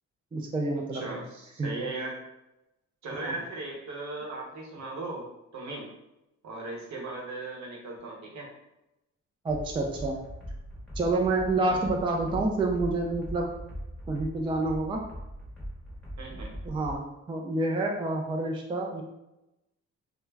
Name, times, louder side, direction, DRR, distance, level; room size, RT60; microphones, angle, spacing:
voice 1, 0.3-1.2 1.6-1.7 3.1-3.4 9.4-10.2 11.0-13.5 14.1-15.0 16.6-19.0, right 2 dB, 15° right, 1 dB, 0.3 m, -28 dB
voice 2, 0.9-2.2 3.0-5.3 5.5-5.9 6.4-8.5 11.6-11.9 16.2-16.5, right 2 dB, 65° right, -1 dB, 0.8 m, -37 dB
sound 1, 9.5-17.0, equal, ahead, 0.9 m, -41 dB
2.3 x 2.0 x 3.2 m, 0.92 s
cardioid pair, 90°, 30 cm